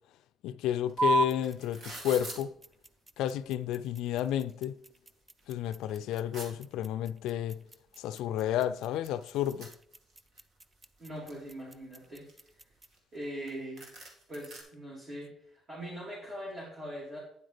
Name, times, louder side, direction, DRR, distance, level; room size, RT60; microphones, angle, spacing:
voice 1, 0.4-2.5 3.2-4.8 5.5-7.6 8.0-9.7, left 11 dB, 85° left, 0.3 m, -31 dB
sound 1, 0.9-1.0 1.2-2.4 3.2-3.3 3.7-4.5 5.0-5.1 5.4-6.5 7.7-7.8 8.1-8.2 8.4-10.4 10.8-11.5 12.0-13.2 13.5-13.6 13.8-14.6, right 2 dB, 60° right, 2.1 m, -46 dB
sound 2, 1.0-13.0, right 2 dB, 15° right, 0.5 m, -37 dB
voice 2, 11.0-12.2 13.1-13.9 14.3-17.2, equal, 35° right, 3.1 m, -41 dB
9.4 x 7.8 x 3.4 m
cardioid pair, 125°, 0 cm